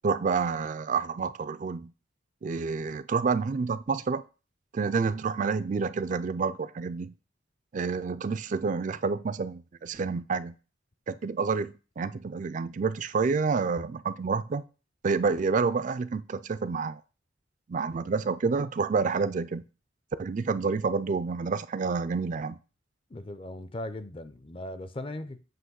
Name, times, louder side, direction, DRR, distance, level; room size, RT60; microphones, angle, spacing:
voice 1, 0.0-1.9 2.4-4.2 4.7-7.1 7.7-10.5 11.1-14.6 15.0-17.0 17.7-19.6 20.2-22.6, right 5 dB, 40° right, 0.4 m, -28 dB
voice 2, 23.1-25.4, left 1 dB, 30° left, 0.5 m, -38 dB
7.8 x 3.0 x 6.2 m
head